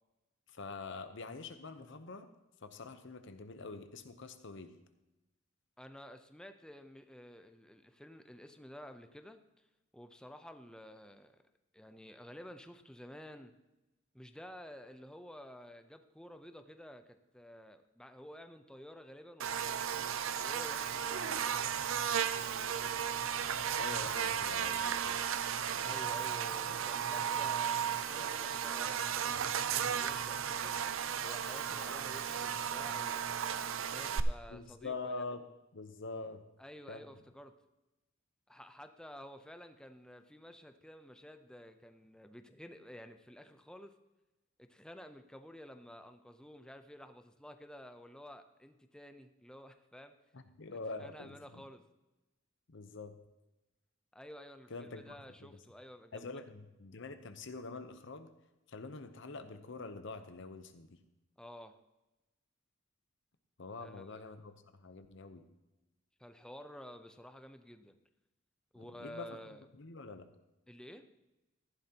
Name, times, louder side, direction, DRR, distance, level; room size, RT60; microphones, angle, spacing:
voice 1, 0.5-2.3 2.6-4.7 23.8-25.2 34.5-35.5 35.7-36.4 36.9-37.0 50.3-51.6 52.7-53.2 54.7-55.6 56.1-58.3 58.7-60.9 63.6-65.4 68.8-69.4 69.8-70.3, left 3 dB, 65° left, 9 dB, 0.9 m, -45 dB
voice 2, 5.8-9.4 9.9-11.4 11.7-13.5 14.1-21.8 25.8-30.7 31.2-33.3 33.8-35.0 36.6-37.5 38.5-43.9 44.6-50.1 51.0-51.8 54.1-56.3 61.4-61.8 63.8-64.2 66.2-68.0 68.7-69.6 70.7-71.1, equal, 5° left, 8 dB, 0.6 m, -52 dB
Buzz, 19.4-34.2, right 8 dB, 85° right, 0.6 m, -35 dB
14.5 x 11.0 x 2.9 m, 1.0 s
head